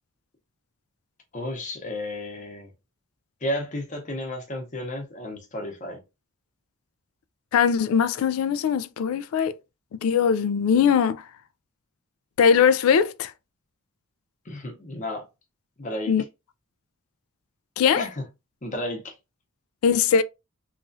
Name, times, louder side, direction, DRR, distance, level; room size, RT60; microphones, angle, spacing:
voice 1, 1.3-2.7 3.4-6.0 14.5-15.2 15.8-16.1 18.0-18.2 18.6-19.1, left 1 dB, 35° left, 0.8 m, -32 dB
voice 2, 7.5-9.6 9.9-11.2 12.4-13.3 16.1-16.2 17.8-18.0 19.8-20.2, left 7 dB, 80° left, 0.3 m, -21 dB
3.0 x 2.4 x 2.5 m
head